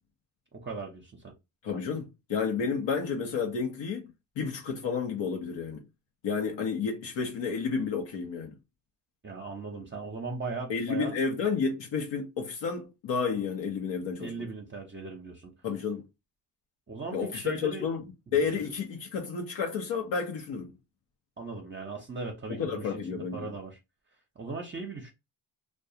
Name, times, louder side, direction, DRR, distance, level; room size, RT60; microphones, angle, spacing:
voice 1, 0.5-1.3 9.2-11.2 14.2-15.5 16.9-17.9 18.6-18.7 21.4-23.8 24.4-25.1, right 4 dB, 25° right, 0.6 m, -38 dB
voice 2, 1.6-5.8 6.2-8.5 10.7-14.3 15.6-16.1 17.1-18.0 18.3-20.7 22.5-23.5, left 5 dB, 80° left, 0.8 m, -31 dB
2.3 x 2.3 x 2.7 m
cardioid pair, 80°, 43 cm